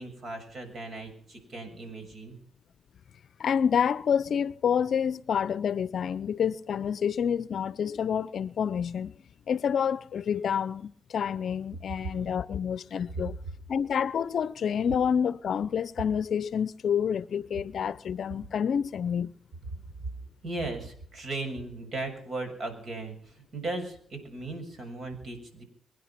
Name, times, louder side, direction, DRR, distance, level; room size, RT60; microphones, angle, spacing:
voice 1, 0.0-2.4 20.4-25.6, right 2 dB, 50° right, 6.8 m, -37 dB
voice 2, 3.4-9.1 9.5-13.4 13.7-19.3, left 7 dB, 55° left, 0.7 m, -28 dB
24.5 x 10.0 x 5.9 m
cardioid pair, 90°, 0 cm